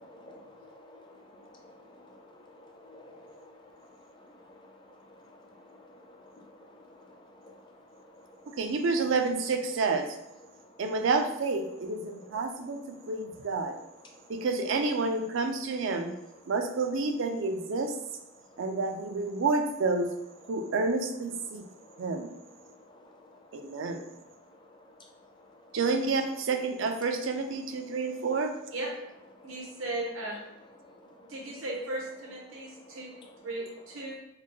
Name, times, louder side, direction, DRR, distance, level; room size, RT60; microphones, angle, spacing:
voice 1, 0.0-8.6 10.5-10.8 12.2-12.3 12.6-13.1 14.1-14.3 18.3-18.7 21.5-25.8 29.4-29.5 30.8-31.3 32.5-33.4, left 1 dB, 20° left, 1 dB, 0.5 m, -54 dB
voice 2, 8.6-10.2 10.8-13.8 14.3-16.1 16.5-18.0 18.6-20.1 20.5-21.6 22.0-22.3 23.5-24.0 25.7-28.5, right 3 dB, 65° right, 5 dB, 0.4 m, -29 dB
voice 3, 29.4-30.4 31.3-34.2, right 2 dB, 85° right, -2 dB, 1.0 m, -37 dB
4.1 x 2.2 x 3.1 m, 0.89 s
head